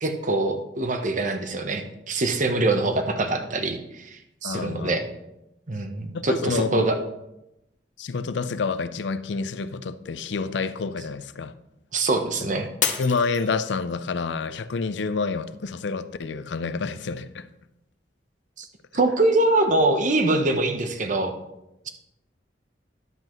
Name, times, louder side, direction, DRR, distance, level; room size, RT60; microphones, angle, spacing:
voice 1, 0.0-5.1 5.7-7.0 11.9-12.7 18.6-18.7 18.9-21.4, right 2 dB, 45° right, 0.9 m, -24 dB
voice 2, 4.4-5.0 6.1-6.9 8.0-11.5 13.0-17.5, left 4 dB, 80° left, 0.5 m, -28 dB
Shatter, 12.8-14.1 14.6-15.1 15.6-15.7, left 8 dB, 45° left, 0.8 m, -29 dB
11.0 x 7.7 x 3.1 m
head